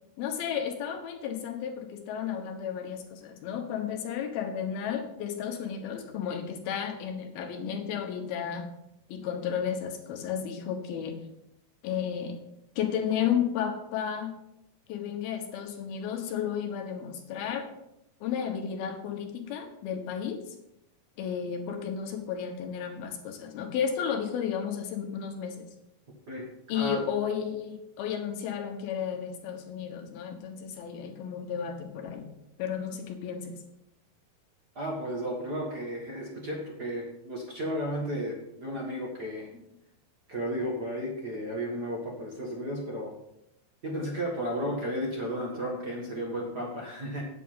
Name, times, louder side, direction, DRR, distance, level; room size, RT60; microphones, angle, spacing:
voice 1, 0.2-8.7 9.1-11.2 11.8-12.4 12.8-14.3 14.9-17.7 18.2-20.6 21.2-25.7 26.7-32.3 32.6-33.6, left 8 dB, 75° left, 4 dB, 3.2 m, -33 dB
voice 2, 34.7-39.6 40.3-43.1 43.8-47.2, equal, 50° right, -1 dB, 1.2 m, -33 dB
9.2 x 8.3 x 5.7 m, 0.82 s
omnidirectional pair, 4.4 m